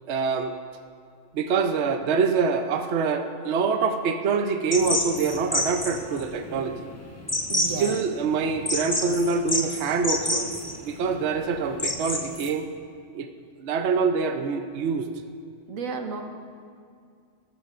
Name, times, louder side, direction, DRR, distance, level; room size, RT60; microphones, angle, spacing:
voice 1, 0.1-0.5 1.3-6.9 7.8-12.7 13.1-13.3 13.6-15.1, right 5 dB, 60° right, 6 dB, 0.9 m, -25 dB
sound 1, 4.7-12.5, left 1 dB, 15° left, 0.9 m, -29 dB
voice 2, 7.5-8.0 15.7-16.2, right 5 dB, 80° right, 5 dB, 1.4 m, -32 dB
19.5 x 13.5 x 2.5 m, 2.2 s
omnidirectional pair, 1.4 m